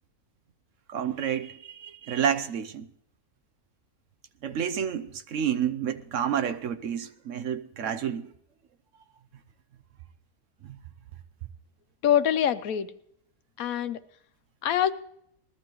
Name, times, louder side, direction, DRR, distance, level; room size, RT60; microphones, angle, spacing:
voice 1, 0.9-2.9 4.4-8.2 10.6-10.8, right 8 dB, 65° right, 1.0 m, -29 dB
voice 2, 12.0-12.9 13.6-14.0 14.6-14.9, left 10 dB, 75° left, 1.1 m, -24 dB
20.5 x 14.0 x 3.0 m
omnidirectional pair, 1.5 m